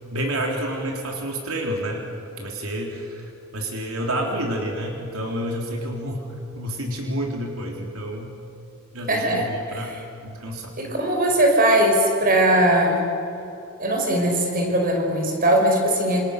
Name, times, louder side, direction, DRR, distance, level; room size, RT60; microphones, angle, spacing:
voice 1, 0.1-2.0 2.4-6.3 6.5-8.4 8.9-10.7, right 1 dB, 80° right, 0 dB, 3.7 m, -29 dB
voice 2, 9.1-10.0 10.8-13.0 13.8-16.2, right 1 dB, 40° right, 1 dB, 5.5 m, -20 dB
28.0 x 28.0 x 6.7 m, 2.7 s
head